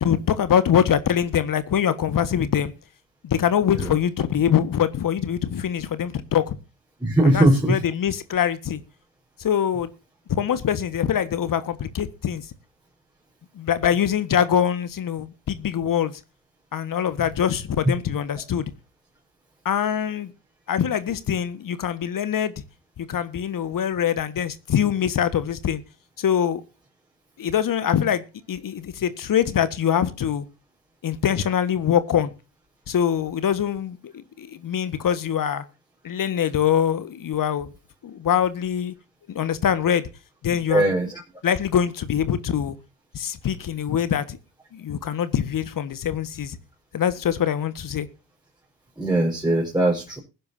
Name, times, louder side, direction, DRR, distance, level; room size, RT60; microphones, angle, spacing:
voice 1, 0.0-2.7 3.2-6.6 7.2-8.8 9.4-9.9 10.3-12.4 13.6-16.2 16.7-18.6 19.6-20.3 20.7-22.5 23.0-25.8 26.2-26.6 27.4-30.4 31.0-32.3 32.9-35.6 36.0-37.7 38.0-38.9 39.3-40.1 40.4-40.9 41.4-42.8 43.1-44.4 44.7-46.6 46.9-48.1, left 9 dB, 40° left, 1.6 m, -23 dB
voice 2, 7.0-7.8 40.7-41.1 49.0-50.2, right 1 dB, 10° right, 5.0 m, -20 dB
20.5 x 10.5 x 2.7 m
hypercardioid pair, 55°, 49 cm